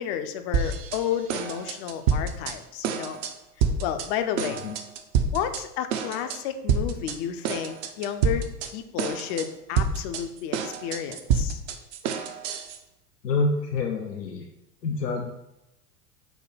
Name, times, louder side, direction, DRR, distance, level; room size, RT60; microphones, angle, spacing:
voice 1, 0.0-3.2 3.8-4.6 5.3-11.6, left 9 dB, 45° left, 9 dB, 0.5 m, -31 dB
sound 1, 0.5-1.0 1.3-2.5 2.8-3.3 3.6-4.1 4.4-5.6 5.9-6.4 6.7-7.2 7.4-8.7 9.0-9.5 9.8-12.8, right 6 dB, 50° right, 0.6 m, -27 dB
voice 2, 4.4-4.8 13.2-14.5 14.8-15.3, left 3 dB, 90° left, 2 dB, 0.6 m, -27 dB
5.0 x 2.1 x 4.8 m, 0.90 s
hypercardioid pair, 85°, 47 cm